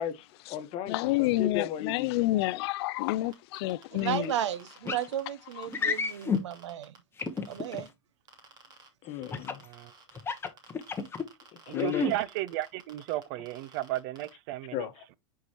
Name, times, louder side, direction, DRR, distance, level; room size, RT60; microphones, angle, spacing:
voice 1, 0.0-2.1 9.0-9.6 11.7-12.1 14.7-15.0, left 10 dB, 45° left, 1.1 m, -35 dB
voice 2, 0.9-4.3 5.6-6.0, left 17 dB, 60° left, 0.4 m, -29 dB
sound 1, 3.3-7.9 8.3-8.9 9.2-14.3, right 4 dB, 30° right, 2.7 m, -53 dB
voice 3, 3.9-6.9 7.5-7.9, right 10 dB, 85° right, 0.9 m, -34 dB
sound 2, 4.9-5.1 5.7-6.4 7.2-7.8 9.3-9.6 10.1-11.2 11.7-12.1, left 5 dB, 15° left, 1.0 m, -30 dB
voice 4, 11.7-14.9, right 16 dB, 55° right, 0.6 m, -34 dB
9.5 x 4.7 x 2.9 m
hypercardioid pair, 120°, 15 cm